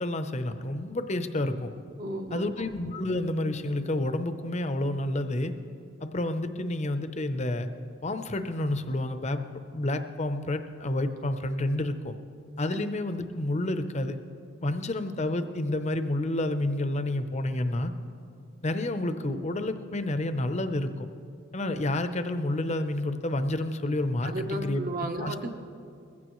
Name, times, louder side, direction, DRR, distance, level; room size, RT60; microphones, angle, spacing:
voice 1, 0.0-1.7 2.3-5.5 6.0-7.7 8.0-9.4 9.7-12.1 12.6-14.2 14.6-17.9 18.6-20.9 21.5-24.8 25.2-25.5, left 1 dB, 35° left, 9 dB, 0.7 m, -29 dB
voice 2, 2.0-2.7 12.7-12.8 24.2-25.5, right 1 dB, 45° right, 4 dB, 1.0 m, -34 dB
21.0 x 15.5 x 3.1 m, 2.4 s
head